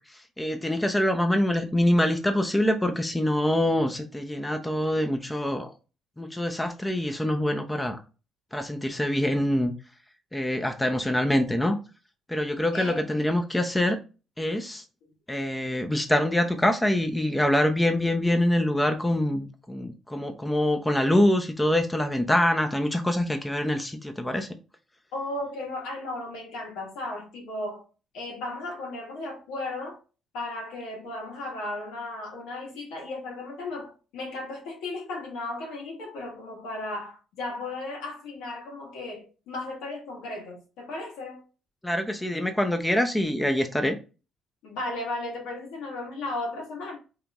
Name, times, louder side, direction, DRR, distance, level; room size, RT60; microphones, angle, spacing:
voice 1, 0.1-5.7 6.2-8.0 8.5-9.7 10.3-11.8 12.3-14.0 14.4-14.8 15.3-24.5 41.8-44.0, left 1 dB, 10° left, 0.6 m, -25 dB
voice 2, 12.7-13.1 25.1-27.8 28.1-30.0 30.3-41.4 44.6-47.0, left 2 dB, 85° left, 1.5 m, -35 dB
5.0 x 3.0 x 2.4 m
supercardioid pair, 75°, 0 cm